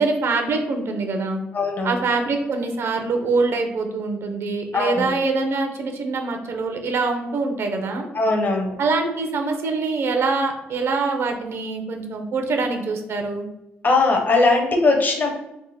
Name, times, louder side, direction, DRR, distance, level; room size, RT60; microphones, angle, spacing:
voice 1, 0.0-1.4 1.8-8.1 8.8-13.5, right 3 dB, 65° right, 4 dB, 0.8 m, -24 dB
voice 2, 1.5-2.0 4.7-5.1 8.1-8.7 13.8-15.3, left 3 dB, 40° left, 2 dB, 0.9 m, -19 dB
3.6 x 2.1 x 4.1 m, 0.88 s
supercardioid pair, 60°, 5 cm